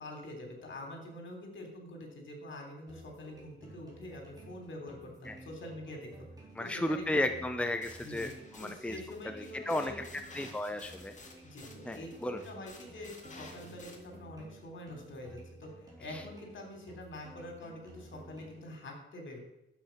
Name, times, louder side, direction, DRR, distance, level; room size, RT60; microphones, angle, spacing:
voice 1, 0.0-6.3 6.6-7.2 8.0-8.3 8.6-10.0 11.4-19.4, left 1 dB, 70° left, 3 dB, 3.3 m, -45 dB
sound 1, 2.9-18.9, right 2 dB, 20° right, 4.1 m, -54 dB
voice 2, 6.6-8.3 8.6-9.0 9.2-9.9 10.3-11.1 11.8-12.4 16.1-16.2, left 1 dB, 5° left, 6 dB, 0.7 m, -34 dB
sound 2, 7.8-14.0, left 3 dB, 35° left, 2.1 m, -53 dB
12.0 x 8.0 x 5.9 m, 0.87 s
wide cardioid pair, 155°, 20 cm